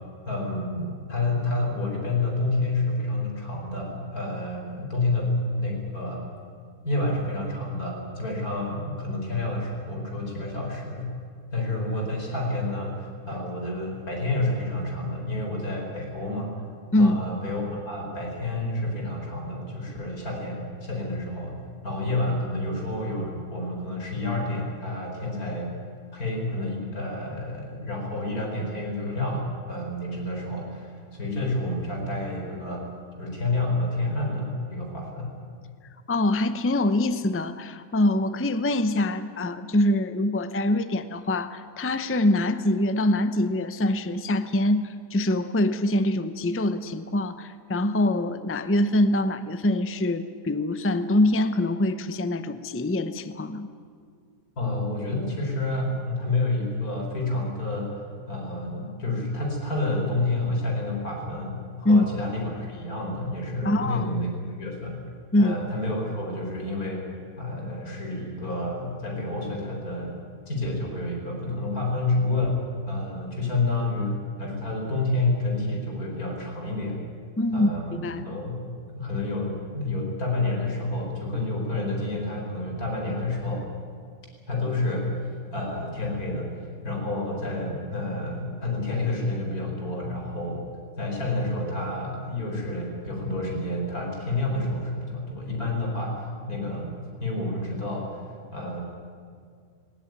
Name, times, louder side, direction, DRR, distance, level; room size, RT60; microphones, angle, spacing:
voice 1, 0.2-6.3 6.8-11.1 11.5-16.6 17.0-25.7 26.1-32.9 33.2-35.3 54.6-58.0 58.3-65.0 65.4-67.1 67.4-70.2 70.5-77.0 77.5-78.0 78.2-78.6 78.9-83.7 84.5-85.1 85.5-86.5 86.8-90.6 91.0-96.9 97.2-98.2 98.5-98.8, left 2 dB, 75° left, 1 dB, 4.9 m, -29 dB
voice 2, 36.1-53.7 61.8-62.1 63.6-64.1 65.3-65.6 77.4-78.2, left 1 dB, 15° left, 11 dB, 0.6 m, -24 dB
20.5 x 18.5 x 9.6 m, 2.2 s
omnidirectional pair, 1.6 m